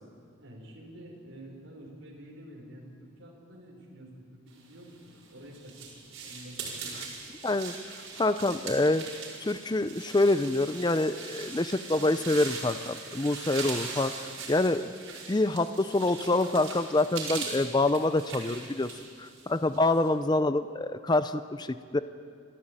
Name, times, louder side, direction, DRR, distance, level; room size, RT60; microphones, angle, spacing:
voice 1, 0.4-5.7 6.2-7.0, equal, 70° right, -1 dB, 5.0 m, -48 dB
sound 1, 4.9-20.1, right 4 dB, 85° right, 5.4 m, -41 dB
voice 2, 7.4-9.0 9.4-14.8 15.3-18.9 19.2-22.0, left 2 dB, 20° left, 12 dB, 0.5 m, -26 dB
26.0 x 14.0 x 8.9 m, 2.3 s
head